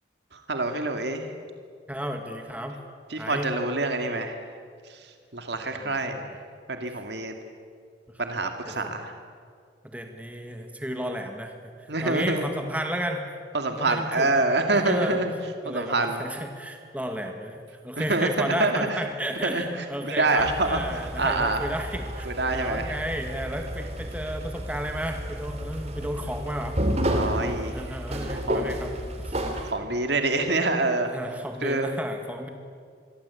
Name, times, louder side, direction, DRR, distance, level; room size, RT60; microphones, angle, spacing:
voice 1, 0.3-1.3 3.1-4.4 4.9-6.3 6.7-7.3 8.2-9.1 11.9-12.5 13.5-15.3 15.7-16.2 18.0-19.0 19.4-19.6 20.0-21.7 22.3-23.0 27.1-27.9 28.5-28.7 29.6-31.1 31.6-31.9, right 2 dB, 65° right, 5 dB, 2.3 m, -26 dB
voice 2, 1.9-2.8 3.2-3.5 5.8-6.3 8.7-8.9 9.8-13.3 13.7-14.3 14.7-15.2 15.6-26.8 27.7-28.9 29.2-29.4 30.3-30.4 31.1-32.5, equal, 10° right, 4 dB, 2.0 m, -33 dB
sound 1, 20.4-29.7, equal, 35° right, 2.9 m, -31 dB
26.5 x 23.0 x 8.5 m, 2.2 s
head